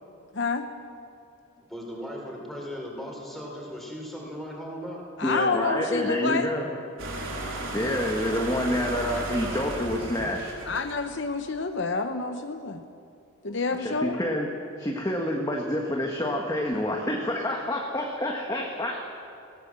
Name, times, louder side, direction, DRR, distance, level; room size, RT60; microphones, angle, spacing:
voice 1, 0.3-0.7 5.2-6.5 10.7-12.8 13.4-14.2, left 4 dB, 60° left, 7 dB, 0.9 m, -28 dB
voice 2, 1.4-5.0, equal, ahead, -1 dB, 4.4 m, -38 dB
voice 3, 5.2-6.7 7.7-10.5 13.8-14.5 14.8-19.0, left 1 dB, 20° left, 0 dB, 1.5 m, -28 dB
sound 1, 7.0-11.2, right 2 dB, 75° right, 4.1 m, -34 dB
19.5 x 18.0 x 7.6 m, 2.6 s
head